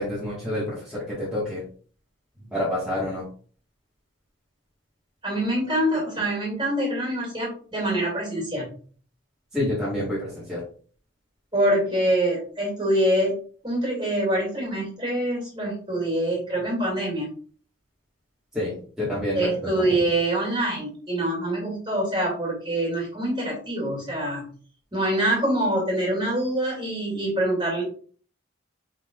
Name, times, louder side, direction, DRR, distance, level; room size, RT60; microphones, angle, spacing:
voice 1, 0.0-1.6 2.5-3.2 9.5-10.6 18.5-19.7, left 1 dB, 5° right, -10 dB, 1.5 m, -28 dB
voice 2, 5.2-8.7 11.5-13.4 13.6-17.3 19.3-24.5 24.9-27.8, right 1 dB, 25° right, -4 dB, 2.4 m, -25 dB
5.7 x 3.8 x 2.4 m, 0.44 s
head